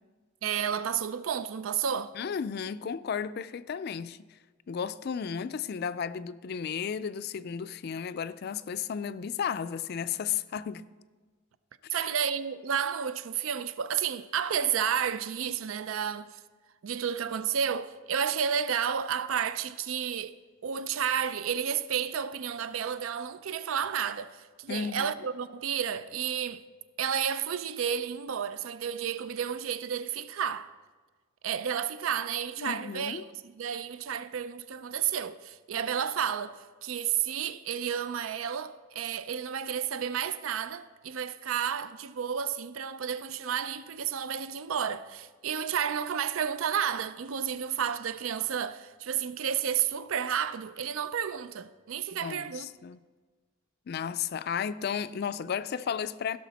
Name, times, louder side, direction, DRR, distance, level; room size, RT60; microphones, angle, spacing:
voice 1, 0.4-2.1 11.9-16.4 16.8-20.4 20.6-26.6 27.0-30.7 31.4-52.7, right 8 dB, 85° right, 0.4 m, -31 dB
voice 2, 2.1-4.2 4.7-10.9 11.9-12.1 24.7-25.1 32.6-33.3 52.2-53.0 53.9-56.4, left 7 dB, 50° left, 0.4 m, -34 dB
16.0 x 6.5 x 4.1 m
head